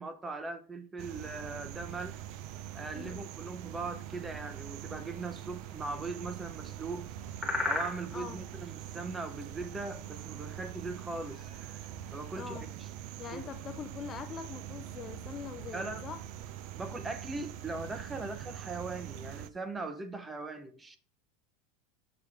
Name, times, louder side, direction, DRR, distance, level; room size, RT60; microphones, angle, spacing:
voice 1, 0.0-2.2 2.7-7.1 7.7-11.5 12.1-12.9 13.3-13.4 15.7-16.0 16.8-21.0, right 3 dB, 15° right, 0.8 m, -40 dB
sound 1, 1.0-19.5, right 11 dB, 60° right, 0.5 m, -43 dB
sound 2, 2.4-12.4, left 2 dB, 5° left, 1.4 m, -43 dB
voice 2, 8.1-8.4 12.4-12.7 13.2-16.2, left 7 dB, 30° left, 0.6 m, -43 dB
6.8 x 3.1 x 6.0 m
supercardioid pair, 125°, 0 cm